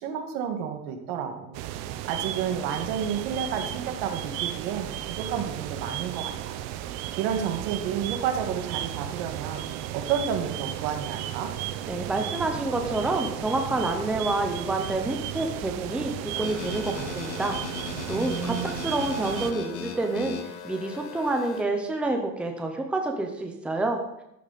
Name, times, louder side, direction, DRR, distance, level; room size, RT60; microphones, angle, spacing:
voice 1, 0.0-1.6 2.0-6.5 7.2-9.6 9.9-11.5 18.1-18.8, right 8 dB, 70° right, 4 dB, 2.1 m, -30 dB
sound 1, 1.5-19.5, right 12 dB, 50° right, 0.8 m, -34 dB
voice 2, 11.9-17.6 18.1-20.4 20.6-24.0, right 2 dB, 5° right, 3 dB, 0.9 m, -28 dB
sound 2, 16.3-21.6, left 6 dB, 90° left, 1.7 m, -38 dB
13.5 x 10.0 x 4.3 m, 0.84 s
cardioid pair, 180°, 33 cm